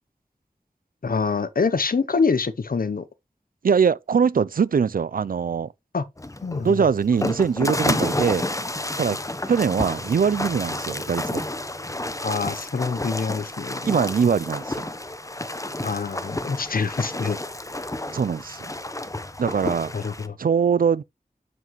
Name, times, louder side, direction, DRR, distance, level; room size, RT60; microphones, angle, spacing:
voice 1, 1.0-3.0 5.9-6.0 6.4-6.8 12.2-13.9 15.8-17.4 19.9-20.4, left 5 dB, 80° left, 0.8 m, -25 dB
voice 2, 3.6-5.7 6.6-8.4 9.0-9.2 9.5-11.5 13.8-14.9 18.1-18.6 19.4-19.9 20.4-21.0, right 6 dB, 80° right, 0.4 m, -22 dB
sound 1, 6.2-20.3, left 1 dB, 20° left, 0.9 m, -30 dB
7.9 x 7.5 x 3.0 m
wide cardioid pair, 65°, 15 cm